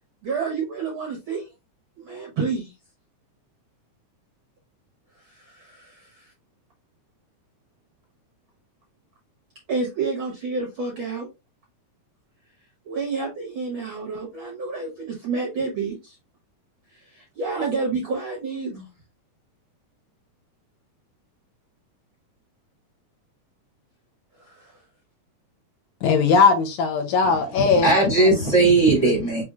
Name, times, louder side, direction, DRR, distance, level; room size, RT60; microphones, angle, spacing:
voice 1, 0.2-1.5 2.0-2.7 5.3-6.3 9.7-11.3 12.9-16.1 16.9-18.9 24.4-24.7, right 4 dB, 65° right, 1.3 m, -29 dB
voice 2, 26.0-28.3, left 5 dB, 75° left, 2.0 m, -19 dB
voice 3, 27.2-29.4, right 2 dB, 25° left, 1.5 m, -19 dB
6.0 x 3.0 x 2.3 m
omnidirectional pair, 3.6 m